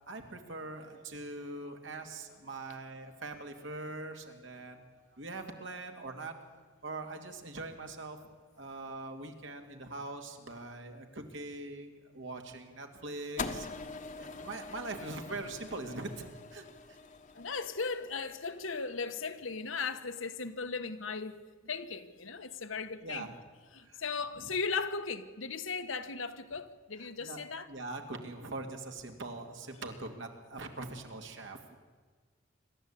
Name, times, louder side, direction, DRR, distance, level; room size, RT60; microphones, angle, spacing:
voice 1, 0.1-4.8 5.1-6.3 6.8-8.2 8.6-13.7 14.1-17.0 22.7-23.3 23.8-24.0 24.4-24.5 27.0-31.8, right 2 dB, 65° right, 2.4 m, -42 dB
sound 1, 13.4-19.7, left 4 dB, 40° left, 1.2 m, -44 dB
voice 2, 17.3-21.4 21.7-23.3 23.7-27.7, left 4 dB, 80° left, 1.4 m, -37 dB
27.0 x 13.0 x 8.6 m
head